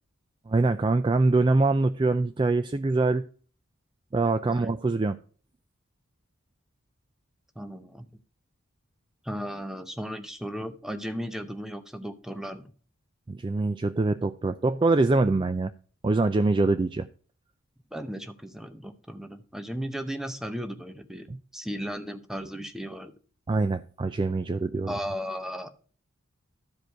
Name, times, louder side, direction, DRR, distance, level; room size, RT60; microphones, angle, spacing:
voice 1, 0.5-3.3 4.1-5.2 13.3-15.7 16.0-17.1 21.3-21.4 23.5-24.9, right 3 dB, 25° right, 0.3 m, -24 dB
voice 2, 7.6-8.1 9.2-12.7 17.9-21.3 21.5-23.1 24.9-25.7, equal, ahead, 0.8 m, -35 dB
13.0 x 5.0 x 4.6 m
head